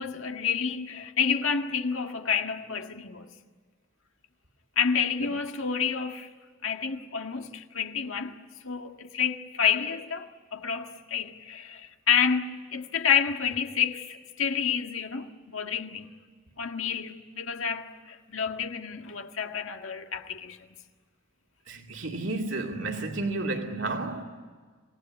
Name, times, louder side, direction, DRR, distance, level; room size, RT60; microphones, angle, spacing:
voice 1, 0.0-3.3 4.7-6.3 6.6-8.4 8.6-16.1 16.6-20.6, left 7 dB, 85° left, 1.8 m, -29 dB
voice 2, 21.7-24.2, right 2 dB, 70° right, 2.5 m, -31 dB
27.0 x 18.0 x 9.9 m
head